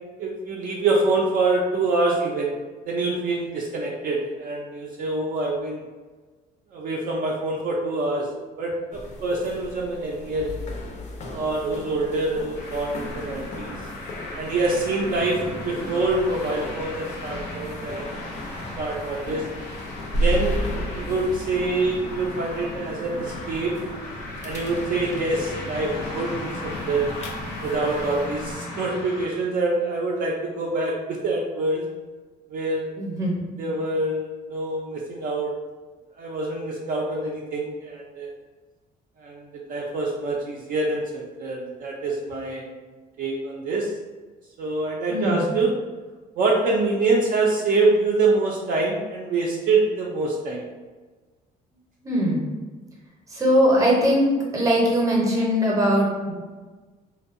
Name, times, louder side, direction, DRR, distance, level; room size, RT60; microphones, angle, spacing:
voice 1, 0.2-2.5 2.9-5.8 6.7-8.3 8.6-10.6 11.3-13.8 14.4-15.4 15.7-18.1 18.8-19.5 20.2-23.8 24.4-27.1 27.6-31.8 32.5-32.9 33.6-35.5 36.2-38.3 39.2-42.7 43.2-43.9 44.6-45.7 46.4-50.6, right 3 dB, 55° right, -2 dB, 0.4 m, -25 dB
sound 1, 8.9-28.5, equal, 45° left, 0.4 m, -35 dB
sound 2, 12.5-29.3, left 2 dB, 85° left, 0.7 m, -36 dB
voice 2, 33.0-33.4 45.1-45.5 52.0-52.4 53.3-54.3 54.5-56.3, equal, 20° right, -2 dB, 0.7 m, -21 dB
2.6 x 2.2 x 2.4 m, 1.3 s
cardioid pair, 110°, 17 cm